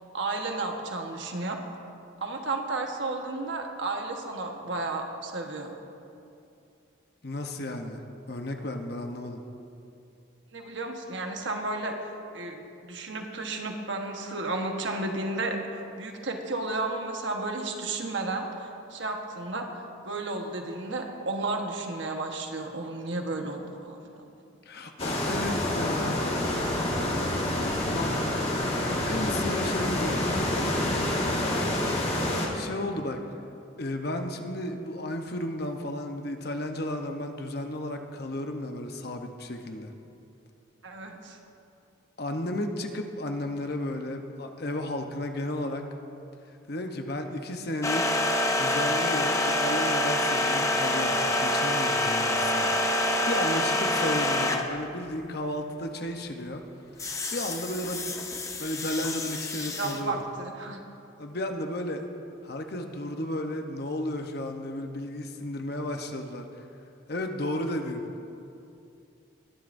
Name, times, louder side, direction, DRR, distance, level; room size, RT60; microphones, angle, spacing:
voice 1, 0.1-1.6 2.2-5.7 10.5-12.1 12.3-24.3 31.6-32.0 40.8-41.4 59.7-60.8, right 2 dB, 65° right, 3 dB, 1.2 m, -33 dB
voice 2, 7.2-8.0 8.3-9.4 24.6-26.3 27.6-28.2 29.0-30.2 32.5-33.2 33.8-39.9 42.2-45.9 46.7-48.1 48.6-56.6 57.0-58.1 58.6-60.2 61.2-62.0 62.4-66.5 67.1-68.0, left 1 dB, 50° left, 4 dB, 0.9 m, -33 dB
sound 1, 25.0-32.5, left 1 dB, 30° left, 1.8 m, -27 dB
sound 2, 47.8-54.8 57.0-60.0, left 1 dB, 15° left, 0.6 m, -26 dB
21.5 x 11.0 x 2.6 m, 2.6 s
head